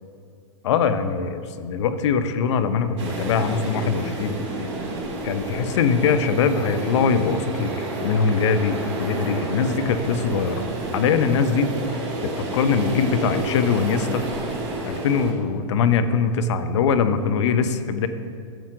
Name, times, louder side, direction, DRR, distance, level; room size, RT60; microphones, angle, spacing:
voice 1, 0.6-4.4 5.2-10.7 10.9-12.0 12.2-14.2 14.9-18.1, left 6 dB, 65° left, 10 dB, 0.8 m, -22 dB
sound 1, 3.0-15.3, right 2 dB, 45° right, 2.6 m, -30 dB
14.0 x 7.3 x 3.7 m, 2.3 s
hypercardioid pair, 115°, 16 cm